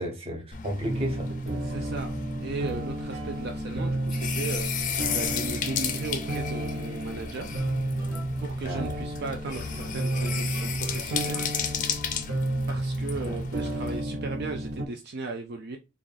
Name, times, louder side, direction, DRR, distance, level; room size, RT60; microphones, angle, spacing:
voice 1, 0.0-1.6 8.6-9.0 13.1-13.4, equal, 30° right, 0.9 m, -34 dB
sound 1, 0.5-14.0, left 7 dB, 40° left, 0.5 m, -34 dB
sound 2, 0.8-14.9, right 1 dB, 80° right, 0.8 m, -32 dB
voice 2, 1.6-2.1 2.4-4.7 5.1-7.6 8.4-11.5 12.7-15.8, right 3 dB, 55° right, 0.4 m, -36 dB
sound 3, 7.6-9.1 9.4-11.7, right 1 dB, 15° right, 1.4 m, -47 dB
3.8 x 2.4 x 3.3 m
head